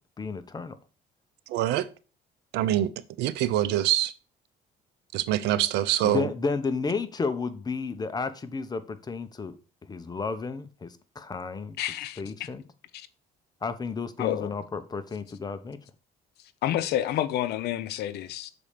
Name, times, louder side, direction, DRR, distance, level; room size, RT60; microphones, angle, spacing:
voice 1, 0.2-0.7 6.0-9.6 9.9-11.8 12.2-12.6 13.6-15.8, left 4 dB, 25° left, 0.8 m, -32 dB
voice 2, 1.5-1.9 2.5-2.9 3.2-4.1 5.1-6.3, right 13 dB, 90° right, 0.6 m, -24 dB
voice 3, 11.8-12.5 12.9-13.1 14.2-14.5 16.6-18.5, left 12 dB, 75° left, 0.6 m, -29 dB
6.9 x 4.3 x 5.0 m
cardioid pair, 110°, 17 cm